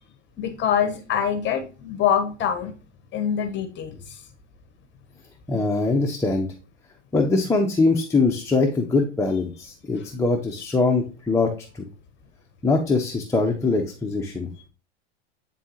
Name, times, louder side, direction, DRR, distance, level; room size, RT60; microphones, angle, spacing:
voice 1, 0.4-2.7 3.1-4.2 10.0-10.1, left 8 dB, 35° left, 8 dB, 1.0 m, -25 dB
voice 2, 5.5-6.5 7.1-11.9 12.6-14.5, left 3 dB, 10° left, 0 dB, 0.8 m, -22 dB
9.0 x 3.8 x 2.9 m, 0.34 s
hypercardioid pair, 100°, 35 cm